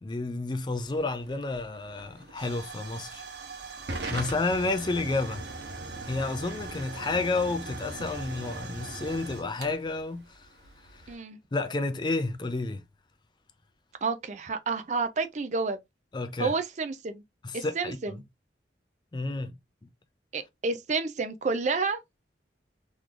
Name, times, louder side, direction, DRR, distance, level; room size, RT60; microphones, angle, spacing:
voice 1, 0.0-3.2 4.1-5.5 6.0-10.5 10.9-11.2 11.5-12.8 16.1-16.5 17.4-18.2 19.1-19.5, left 3 dB, 25° left, 0.4 m, -31 dB
Hiss / Fire / Tick, 0.7-11.1, right 3 dB, 65° right, 1.1 m, -40 dB
voice 2, 11.1-11.4 14.0-15.8 16.4-17.2 17.5-18.2 20.3-22.0, right 4 dB, 40° right, 0.4 m, -30 dB
3.7 x 3.1 x 2.4 m
head